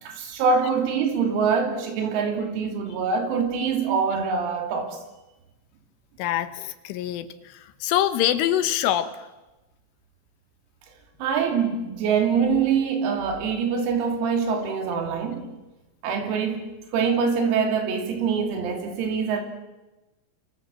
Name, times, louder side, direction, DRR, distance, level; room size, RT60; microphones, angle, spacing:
voice 1, 0.0-5.0 11.2-15.5 16.0-16.7 16.9-19.4, right 5 dB, 90° right, 5.7 m, -24 dB
voice 2, 6.2-9.3, left 12 dB, 75° left, 3.5 m, -25 dB
28.5 x 26.5 x 7.5 m
omnidirectional pair, 6.0 m